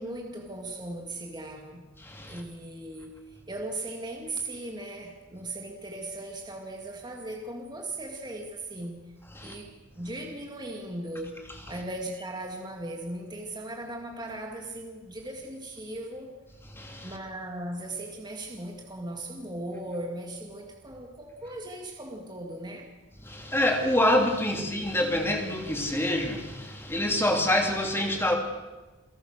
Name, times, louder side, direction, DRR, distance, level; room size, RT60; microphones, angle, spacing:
voice 1, 0.0-1.9 2.3-9.1 9.4-16.3 17.0-22.9, right 1 dB, 20° right, 2.2 m, -38 dB
voice 2, 2.0-2.4 9.3-9.6 16.7-17.2 23.2-28.4, left 1 dB, 10° left, 3.1 m, -26 dB
28.5 x 17.5 x 6.5 m
head